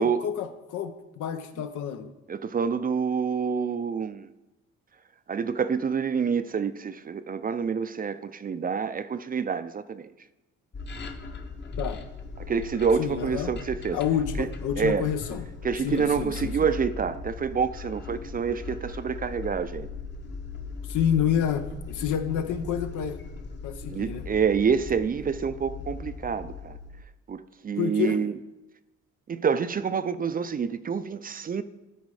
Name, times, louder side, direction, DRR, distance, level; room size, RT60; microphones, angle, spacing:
voice 1, 0.0-2.1 11.8-12.0 13.0-13.5 13.9-15.4 15.8-16.7 20.9-23.2 23.6-24.2 27.8-28.2, left 9 dB, 80° left, 0.8 m, -29 dB
voice 2, 2.3-4.3 5.3-10.1 12.4-14.0 14.4-14.5 14.8-15.1 15.6-19.9 23.9-26.8 27.3-28.3 29.3-31.6, right 6 dB, 30° right, 0.4 m, -27 dB
sound 1, 10.7-27.0, left 4 dB, 35° left, 0.9 m, -38 dB
12.5 x 4.3 x 4.8 m
cardioid pair, 90°, 30 cm